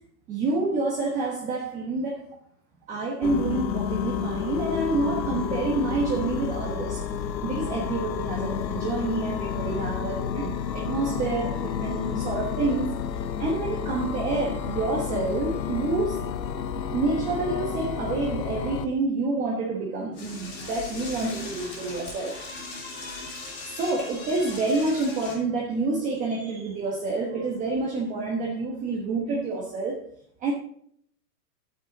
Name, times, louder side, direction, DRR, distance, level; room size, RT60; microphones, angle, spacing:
voice 1, 0.3-2.3 2.9-7.0 7.4-13.1 13.4-16.2 16.9-22.4 23.6-30.0 30.4-30.5, right 3 dB, 15° right, -2 dB, 1.2 m, -28 dB
sound 1, 3.2-18.9, left 8 dB, 90° left, 1.1 m, -30 dB
Door / Toilet flush, 20.1-25.4, left 3 dB, 20° left, 2.8 m, -39 dB
11.0 x 9.1 x 3.9 m, 0.65 s
hypercardioid pair, 155°, 50 cm